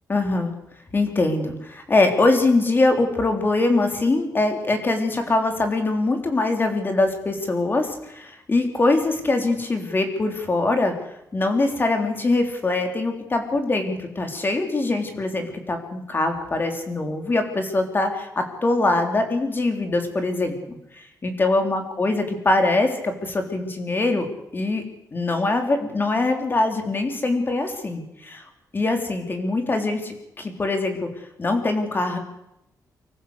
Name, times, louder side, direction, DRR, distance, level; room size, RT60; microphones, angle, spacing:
voice 1, 0.1-0.5 0.9-10.9 11.3-20.6 20.9-24.3 24.5-24.8 25.1-28.4 28.7-31.1 31.4-32.2, left 2 dB, 30° left, 4 dB, 3.7 m, -23 dB
25.0 x 15.0 x 8.2 m, 0.85 s
cardioid pair, 115°, 7 cm